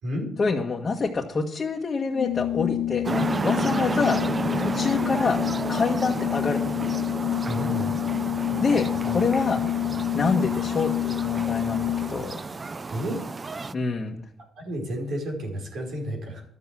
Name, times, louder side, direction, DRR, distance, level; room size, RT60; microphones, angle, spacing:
voice 1, 0.4-3.0 3.4-4.2 4.6-5.4 5.7-6.6 8.6-9.6 10.1-12.3 13.7-14.2, left 4 dB, 35° left, -1 dB, 1.6 m, -26 dB
Organ, 2.1-12.4, left 13 dB, 80° left, 0.5 m, -28 dB
sound 1, 3.0-13.7, right 4 dB, 30° right, 0.5 m, -31 dB
voice 2, 7.5-8.0 8.5-9.2 9.6-9.7 12.9-13.2 14.6-16.4, equal, 65° right, 1 dB, 5.2 m, -32 dB
12.5 x 8.1 x 7.6 m, 0.67 s
cardioid pair, 90°, 0 cm